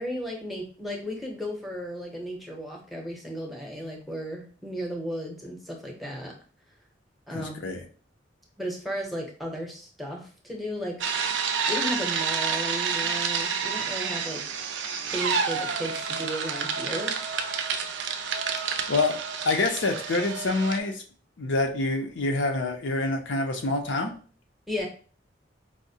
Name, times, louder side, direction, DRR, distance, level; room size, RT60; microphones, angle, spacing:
voice 1, 0.0-6.4 7.3-7.7 8.6-11.1 11.7-14.4 15.1-17.2 24.7-24.9, equal, ahead, 0 dB, 0.7 m, -34 dB
voice 2, 7.3-7.8 18.9-19.2 19.4-21.0 21.4-24.1, left 2 dB, 85° left, 4 dB, 0.6 m, -26 dB
sound 1, 11.0-20.8, right 6 dB, 70° right, 0.4 m, -29 dB
4.8 x 2.1 x 2.7 m, 0.40 s
head